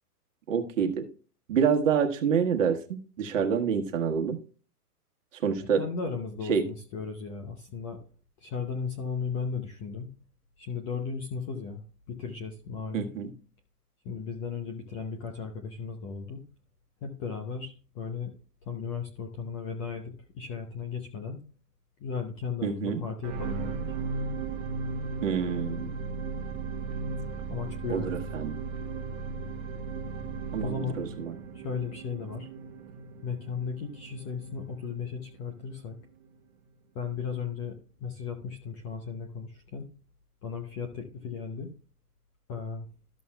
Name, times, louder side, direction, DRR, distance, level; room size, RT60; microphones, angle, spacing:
voice 1, 0.5-1.1 1.5-4.4 5.3-5.8 6.5-6.6 12.9-13.3 22.6-23.0 25.2-26.1 27.9-28.5 30.5-31.4, right 7 dB, 55° right, 1.2 m, -27 dB
voice 2, 5.6-8.0 8.4-10.1 10.6-13.1 14.0-16.4 17.0-18.3 18.6-21.4 22.0-23.8 27.5-28.2 30.6-31.0 31.5-32.5 33.2-36.0 36.9-39.9 40.4-41.7 42.5-42.9, left 5 dB, 20° left, 0.6 m, -36 dB
sound 1, 23.2-35.6 36.2-36.3, right 4 dB, 30° right, 1.1 m, -36 dB
13.0 x 6.8 x 2.2 m
hypercardioid pair, 140°, 47 cm